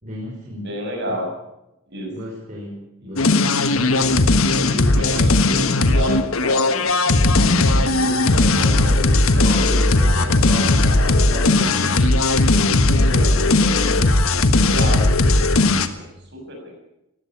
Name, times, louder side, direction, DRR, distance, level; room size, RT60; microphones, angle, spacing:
voice 1, 0.0-0.7 1.1-1.2 2.1-3.6 8.0-8.7 9.3-12.5 12.9-13.6, equal, 35° right, -4 dB, 5.3 m, -33 dB
voice 2, 0.6-1.3 1.9-2.1 3.0-3.3 3.9-4.2 4.6-10.5 10.8-11.4 13.6-14.0 14.7-16.7, equal, 55° right, 2 dB, 7.2 m, -32 dB
sound 1, 3.2-15.9, left 2 dB, 70° left, 1.3 m, -17 dB
19.5 x 15.5 x 8.8 m, 0.90 s
head